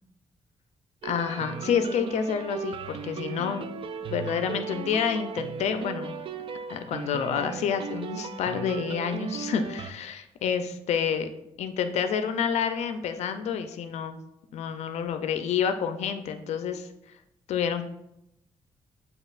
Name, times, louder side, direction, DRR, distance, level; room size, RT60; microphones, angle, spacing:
voice 1, 1.0-3.7 4.1-6.2 6.7-11.3 11.6-14.2 14.5-16.9 17.5-17.8, left 7 dB, 75° left, 8 dB, 0.5 m, -28 dB
sound 1, 1.0-9.9, right 6 dB, 50° right, 0.3 m, -36 dB
7.2 x 2.9 x 2.5 m, 0.83 s
cardioid pair, 95°, 11 cm